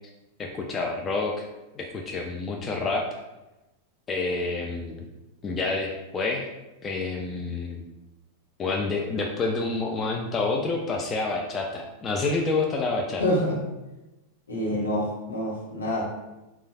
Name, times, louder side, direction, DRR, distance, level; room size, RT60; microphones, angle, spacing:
voice 1, 0.4-1.4 1.8-3.2 4.1-5.1 5.4-6.5 6.8-7.8 8.6-13.2, left 3 dB, 25° left, 0 dB, 0.3 m, -28 dB
voice 2, 13.2-13.6 14.5-16.0, left 1 dB, 75° left, -4 dB, 0.9 m, -26 dB
3.1 x 2.3 x 2.5 m, 1.0 s
figure-of-eight pair, 90°, 0 cm